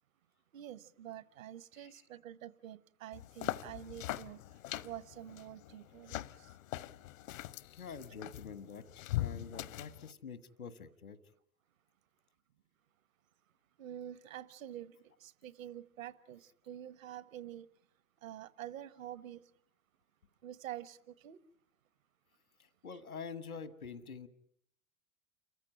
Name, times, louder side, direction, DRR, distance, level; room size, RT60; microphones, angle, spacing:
voice 1, 0.5-4.4 4.8-6.5 13.8-17.7 18.2-19.4 20.4-21.4, right 11 dB, 65° right, 1.2 m, -47 dB
sound 1, 3.1-10.1, left 14 dB, 65° left, 0.9 m, -42 dB
voice 2, 7.8-11.2 22.8-24.3, left 5 dB, 80° left, 1.6 m, -46 dB
29.5 x 14.5 x 10.0 m
figure-of-eight pair, 80°, 42 cm